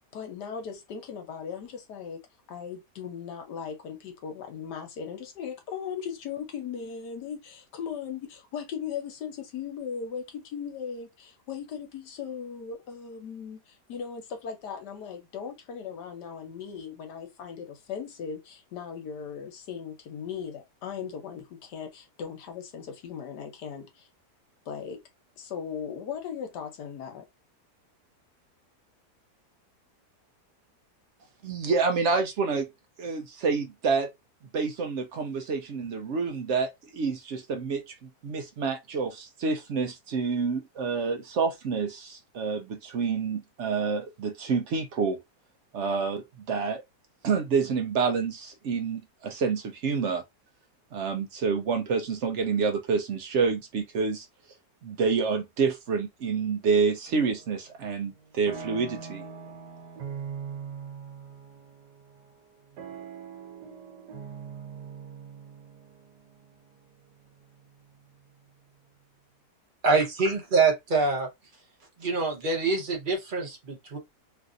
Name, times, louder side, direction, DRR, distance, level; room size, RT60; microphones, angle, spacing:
voice 1, 0.1-2.2 2.5-24.1 24.7-25.0 25.4-27.2, left 7 dB, 80° left, 1.4 m, -38 dB
voice 2, 31.4-32.7 33.0-34.1 34.5-45.2 45.7-46.8 47.2-50.2 50.9-54.3 54.8-59.2, right 5 dB, 65° right, 0.7 m, -28 dB
sound 1, 57.1-57.6 58.0-68.0, right 6 dB, 85° right, 1.4 m, -42 dB
voice 3, 69.8-71.3 72.0-74.0, right 4 dB, 40° right, 0.8 m, -25 dB
3.2 x 2.5 x 2.5 m
omnidirectional pair, 1.8 m